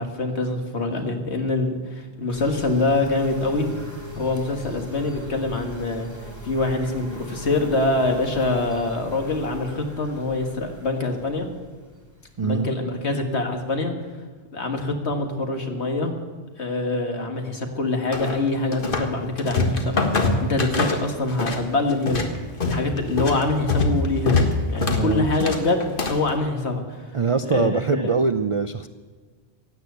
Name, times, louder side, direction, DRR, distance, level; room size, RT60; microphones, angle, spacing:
voice 1, 0.0-3.7 4.2-6.1 6.4-11.5 12.4-13.9 14.5-16.1 16.6-22.3 22.6-27.2 27.4-28.2, left 2 dB, 70° left, 4 dB, 2.0 m, -25 dB
sound 1, 2.3-12.9, left 1 dB, 15° left, 2.8 m, -40 dB
voice 2, 12.4-12.7 24.9-25.3 27.1-28.9, right 4 dB, 50° right, 10 dB, 0.4 m, -23 dB
sound 2, 18.1-19.1 19.4-21.6 21.9-26.3, left 3 dB, 50° left, 1.6 m, -24 dB
16.5 x 9.5 x 8.1 m, 1.5 s
omnidirectional pair, 1.2 m